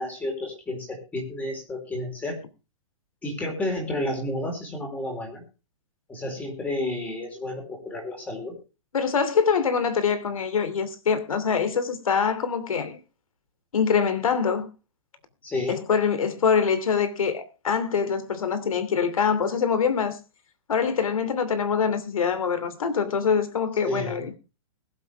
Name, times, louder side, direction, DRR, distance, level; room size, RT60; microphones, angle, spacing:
voice 1, 0.0-2.4 3.2-5.4 6.1-8.6 15.4-15.8 23.8-24.3, left 1 dB, 10° left, 4.3 m, -31 dB
voice 2, 8.9-13.0 13.7-14.7 15.7-20.2 20.7-24.3, left 6 dB, 90° left, 2.9 m, -24 dB
21.5 x 8.2 x 3.5 m
hypercardioid pair, 160°, 17 cm